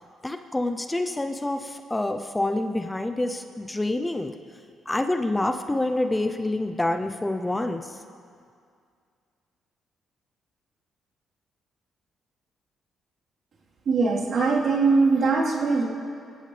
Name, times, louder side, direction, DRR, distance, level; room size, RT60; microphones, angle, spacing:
voice 1, 0.2-4.3 4.9-8.0, left 2 dB, 15° left, 7 dB, 0.7 m, -27 dB
voice 2, 13.9-15.8, right 4 dB, 60° right, -5 dB, 3.8 m, -21 dB
24.0 x 15.5 x 3.4 m, 2.3 s
cardioid pair, 90°, 0 cm